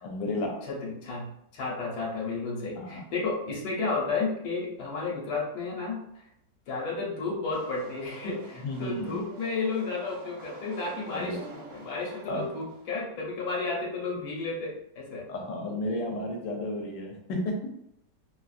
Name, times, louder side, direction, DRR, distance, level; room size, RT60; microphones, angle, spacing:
voice 1, 0.0-0.6 2.8-3.1 8.6-9.2 11.1-11.4 12.3-12.5 15.3-17.7, left 1 dB, 80° left, 2 dB, 1.3 m, -33 dB
voice 2, 0.7-1.3 1.5-6.0 6.7-15.2, left 3 dB, 60° left, -3 dB, 1.3 m, -32 dB
sound 1, 7.5-13.0, right 3 dB, 75° right, 1.2 m, -47 dB
3.1 x 2.5 x 2.4 m, 0.77 s
omnidirectional pair, 2.0 m